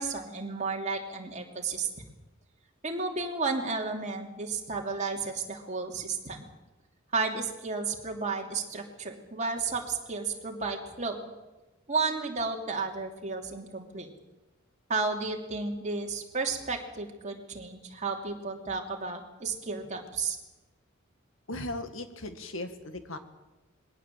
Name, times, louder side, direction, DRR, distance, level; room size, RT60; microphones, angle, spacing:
voice 1, 0.0-1.9 2.8-6.4 7.1-11.3 11.9-14.1 14.9-20.4, right 4 dB, 35° right, 2 dB, 2.9 m, -32 dB
voice 2, 21.5-23.2, left 1 dB, 75° left, 9 dB, 2.0 m, -37 dB
21.5 x 17.5 x 7.5 m, 1.1 s
head